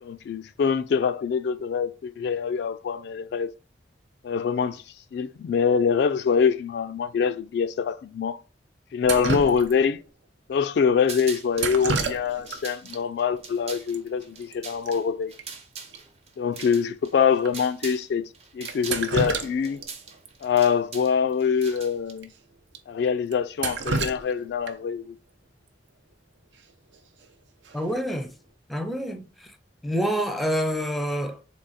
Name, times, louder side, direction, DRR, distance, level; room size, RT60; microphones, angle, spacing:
voice 1, 0.0-3.5 4.2-4.8 5.1-8.4 8.9-10.0 10.5-15.3 16.4-18.2 18.5-19.8 20.4-22.3 22.9-25.1, left 6 dB, 65° left, 0.3 m, -24 dB
Drip, 9.0-10.0 11.5-12.6 12.9-13.0 13.9-14.0 14.3-14.5 14.8-14.9 15.4-15.5 15.9-16.0 16.6-16.7 17.4-17.5 18.7-19.9 20.2-20.3 21.7-21.8 22.2-22.3 22.7-22.8 23.3-24.9 26.9-27.2 27.6-28.0, right 3 dB, 80° right, 0.6 m, -30 dB
sound 1, 11.0-11.8 12.3-18.1 18.3-22.1, right 5 dB, 35° right, 0.7 m, -42 dB
voice 2, 27.7-28.3 28.7-29.6 29.8-31.4, equal, ahead, 0.5 m, -27 dB
3.8 x 3.3 x 4.1 m
head